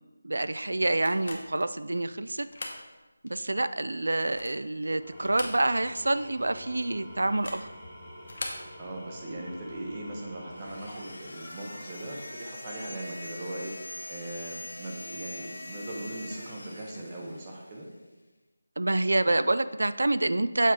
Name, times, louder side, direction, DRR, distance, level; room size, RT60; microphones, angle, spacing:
voice 1, 0.2-2.5 3.2-7.7 18.8-20.7, right 2 dB, 80° right, 13 dB, 0.3 m, -27 dB
sound 1, 1.0-1.7 2.3-2.8 3.3-3.4 4.0-4.7 5.2-6.0 6.2-6.3 7.3-7.7 8.2-8.7, left 2 dB, 45° left, 0.8 m, -40 dB
Engine / Tools, 4.9-12.4, equal, 5° left, 0.9 m, -47 dB
voice 2, 8.8-13.7 14.1-17.9, right 1 dB, 15° right, -2 dB, 0.6 m, -39 dB
sound 2, 10.5-17.9, left 1 dB, 90° left, 0.8 m, -43 dB
7.3 x 3.5 x 4.3 m, 1.2 s
figure-of-eight pair, 180°, 0 cm